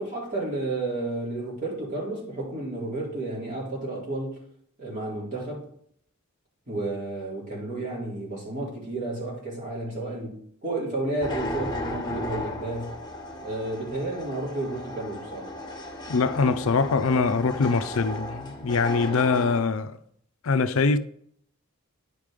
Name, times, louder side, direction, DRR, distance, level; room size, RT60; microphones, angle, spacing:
voice 1, 0.0-4.4 4.8-5.7 6.7-12.9 13.4-15.5, right 2 dB, 40° right, 3.6 m, -32 dB
sound 1, 11.2-19.6, left 1 dB, 20° left, 1.2 m, -35 dB
voice 2, 16.1-20.0 20.4-21.0, left 4 dB, 70° left, 0.5 m, -23 dB
9.9 x 5.2 x 5.0 m
head